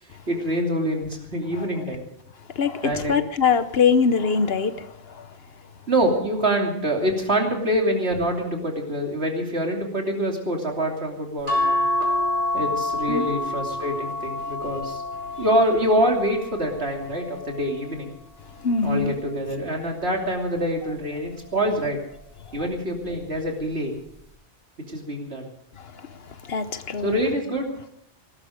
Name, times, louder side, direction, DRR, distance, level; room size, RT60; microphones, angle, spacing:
voice 1, 0.3-2.0 2.8-3.2 5.9-11.8 12.5-15.0 15.4-18.1 18.8-22.0 22.5-23.9 24.9-25.5 27.0-27.9, right 1 dB, 60° right, 1 dB, 3.2 m, -25 dB
voice 2, 2.6-5.3 13.1-13.3 18.6-19.2 22.6-22.7 25.8-26.1 26.4-27.2, left 5 dB, 60° left, 11 dB, 1.1 m, -23 dB
sound 1, 11.5-18.1 18.7-20.1 21.4-21.8 22.1-22.2, left 2 dB, 40° right, 4.6 m, -29 dB
19.5 x 13.0 x 5.1 m, 0.75 s
omnidirectional pair, 1.2 m